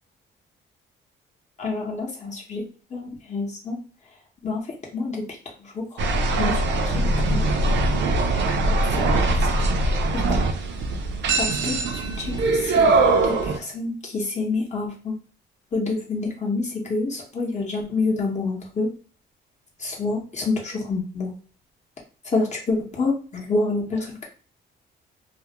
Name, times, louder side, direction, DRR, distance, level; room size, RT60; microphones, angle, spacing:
voice 1, 1.6-2.6 2.9-3.8 4.4-4.6 4.9-5.2 6.4-6.5 7.3-7.4 10.1-10.4 11.4-11.7 12.2-12.3 12.8-12.9 13.7-15.1 15.7-18.9 19.8-21.3 22.3-24.1, left 3 dB, 35° left, -2 dB, 0.8 m, -27 dB
sound 1, 6.0-13.6, right 2 dB, 65° right, 0.5 m, -21 dB
2.4 x 2.0 x 2.8 m, 0.40 s
cardioid pair, 90°, 20 cm